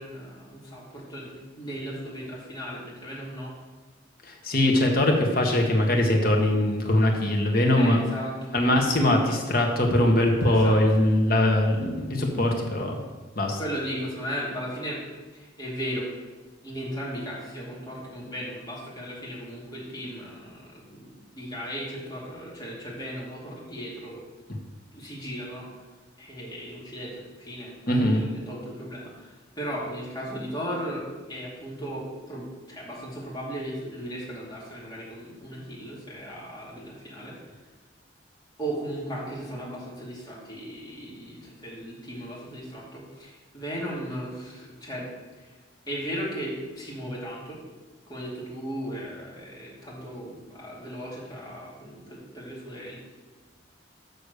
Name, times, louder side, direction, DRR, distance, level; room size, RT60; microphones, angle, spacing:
voice 1, 0.0-3.5 7.7-8.6 10.5-10.8 13.6-15.0 15.3-16.1 16.6-24.2 24.9-25.7 26.2-37.4 38.6-45.1 45.4-45.5 45.9-47.6 48.1-53.0, equal, 20° left, -5 dB, 2.5 m, -36 dB
voice 2, 4.4-8.0 8.5-13.0 13.3-13.6 27.9-28.2, left 1 dB, 50° left, 1 dB, 1.4 m, -22 dB
6.7 x 6.2 x 6.6 m, 1.2 s
head